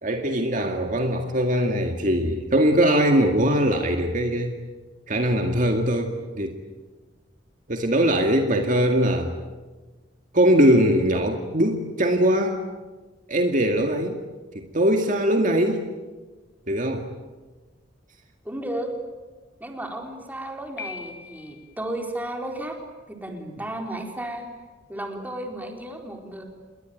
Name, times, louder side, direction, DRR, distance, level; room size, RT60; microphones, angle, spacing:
voice 1, 0.0-4.5 5.1-6.6 7.7-9.3 10.3-12.6 13.3-14.2 14.6-15.8 16.7-17.1, equal, 45° right, 4 dB, 2.1 m, -21 dB
voice 2, 18.4-18.9 19.6-22.8 23.1-24.5 24.9-26.5, right 1 dB, 10° right, 2 dB, 4.2 m, -33 dB
Piano, 20.8-21.7, left 6 dB, 60° left, 2.3 m, -39 dB
28.5 x 22.0 x 9.2 m, 1.3 s
head